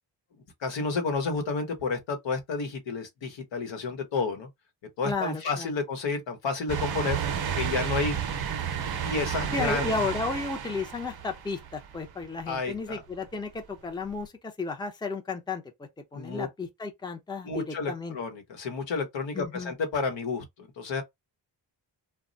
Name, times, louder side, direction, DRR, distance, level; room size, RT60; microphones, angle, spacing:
voice 1, 0.6-4.5 5.0-7.2 7.6-8.2 9.0-9.9 12.5-13.0 16.1-16.5 17.4-21.0, left 4 dB, 75° left, 1.0 m, -31 dB
voice 2, 5.0-5.7 9.5-18.2 19.3-19.7, left 4 dB, 10° left, 0.6 m, -33 dB
sound 1, 6.7-12.3 12.7-12.8 14.2-14.3, right 8 dB, 55° right, 0.7 m, -32 dB
2.3 x 2.0 x 3.8 m
cardioid pair, 85°, 45 cm